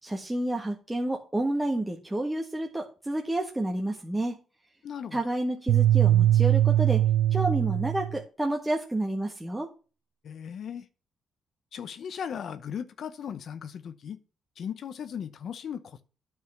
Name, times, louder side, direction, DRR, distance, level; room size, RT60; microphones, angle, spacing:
voice 1, 0.0-4.4 5.1-9.7, right 1 dB, 10° right, 1.5 m, -30 dB
voice 2, 4.8-5.2 10.2-10.9 11.7-14.2 14.6-16.0, left 8 dB, 60° left, 0.8 m, -37 dB
sound 1, 5.7-8.2, right 12 dB, 90° right, 0.4 m, -21 dB
9.5 x 5.4 x 7.1 m
cardioid pair, 90°, 0 cm